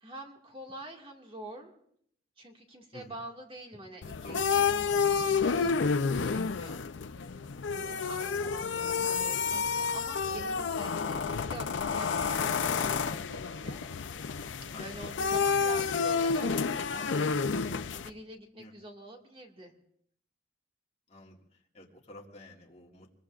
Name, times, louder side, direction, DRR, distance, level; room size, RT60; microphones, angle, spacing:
voice 1, 0.0-1.7 2.4-6.9 7.7-13.8 14.8-17.3 17.9-19.7, right 1 dB, 30° right, 1 dB, 2.0 m, -46 dB
sound 1, 4.0-18.1, left 5 dB, 85° left, 0.6 m, -30 dB
voice 2, 21.1-23.1, left 1 dB, 35° left, -1 dB, 2.0 m, -50 dB
24.5 x 21.5 x 2.5 m, 0.67 s
head